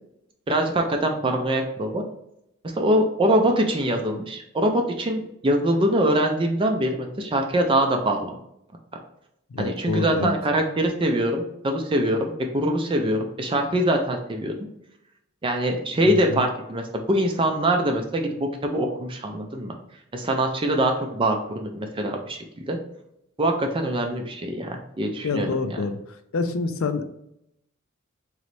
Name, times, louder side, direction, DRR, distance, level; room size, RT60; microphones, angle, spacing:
voice 1, 0.5-2.0 2.6-8.4 9.6-14.5 15.4-19.7 20.1-22.4 22.7-22.8 23.4-25.8, right 1 dB, 25° right, 3 dB, 0.4 m, -23 dB
voice 2, 9.5-10.3 16.0-16.4 25.2-26.0 26.3-27.0, left 4 dB, 70° left, 9 dB, 0.5 m, -27 dB
3.9 x 3.1 x 3.1 m, 0.79 s
head